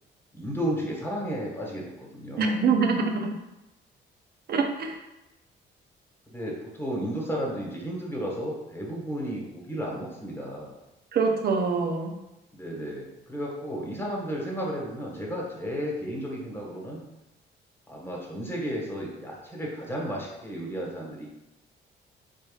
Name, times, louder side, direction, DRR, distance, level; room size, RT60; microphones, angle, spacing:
voice 1, 0.3-2.6 6.3-10.7 12.5-17.0 17.9-21.3, equal, 10° left, -3 dB, 1.2 m, -33 dB
voice 2, 2.4-3.3 4.5-5.0 11.1-12.1, right 4 dB, 55° right, 3 dB, 0.6 m, -24 dB
4.2 x 3.6 x 2.3 m, 0.97 s
cardioid pair, 90°, 20 cm